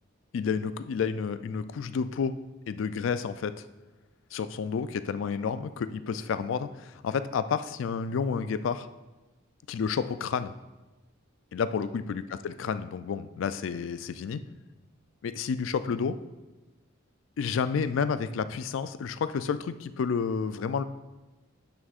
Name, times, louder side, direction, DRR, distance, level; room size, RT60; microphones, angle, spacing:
voice 1, 0.3-2.4 2.7-3.6 4.3-8.9 9.7-10.5 11.5-14.4 15.2-16.2 17.4-20.8, left 6 dB, 65° left, 12 dB, 0.3 m, -30 dB
9.4 x 6.2 x 2.4 m, 1.1 s
head